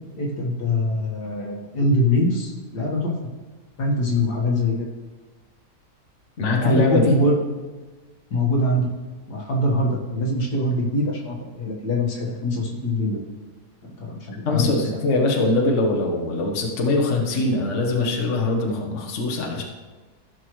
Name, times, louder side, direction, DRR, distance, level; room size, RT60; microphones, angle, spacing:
voice 1, 0.2-3.1 3.8-4.9 6.5-7.3 8.3-8.9 9.3-13.2 14.0-14.7, left 1 dB, 75° left, -2 dB, 2.2 m, -23 dB
voice 2, 6.4-7.1 14.5-19.6, left 2 dB, 50° left, 0 dB, 1.3 m, -22 dB
15.5 x 6.2 x 3.2 m, 1.3 s
omnidirectional pair, 1.8 m